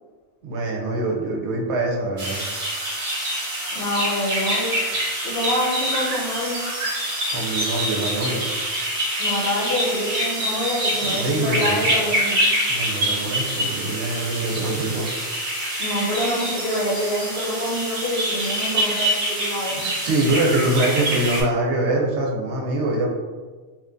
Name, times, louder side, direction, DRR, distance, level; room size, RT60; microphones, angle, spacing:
voice 1, 0.4-2.4 7.3-8.5 11.0-12.0 12.7-15.1 19.7-23.1, right 2 dB, 75° right, -2 dB, 0.9 m, -24 dB
sound 1, 2.2-21.4, right 1 dB, 50° right, 0.7 m, -25 dB
voice 2, 3.7-4.7 5.2-6.6 9.2-12.5 15.8-19.8, left 1 dB, 65° left, -3 dB, 0.9 m, -26 dB
2.7 x 2.2 x 2.5 m, 1.4 s
omnidirectional pair, 1.2 m